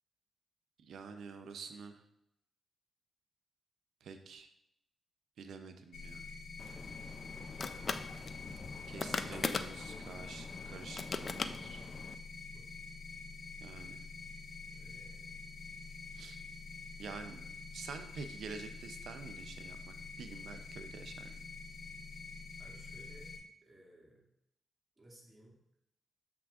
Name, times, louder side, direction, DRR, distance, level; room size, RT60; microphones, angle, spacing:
voice 1, 0.8-2.0 4.0-4.5 5.4-6.2 8.9-11.8 13.6-14.0 16.2-16.4 17.0-17.4 17.7-21.4, right 5 dB, 85° right, 8 dB, 0.5 m, -48 dB
sound 1, 5.9-23.4, left 4 dB, 70° left, 2.0 m, -47 dB
sound 2, 6.6-12.2, left 4 dB, 45° left, 0.3 m, -40 dB
voice 2, 7.2-8.5 8.9-10.0 12.5-12.7 14.7-15.4 22.6-23.3 23.6-24.3 25.0-25.6, right 1 dB, 25° right, -4 dB, 2.1 m, -59 dB
7.0 x 6.0 x 2.4 m, 0.80 s
cardioid pair, 100°, 0 cm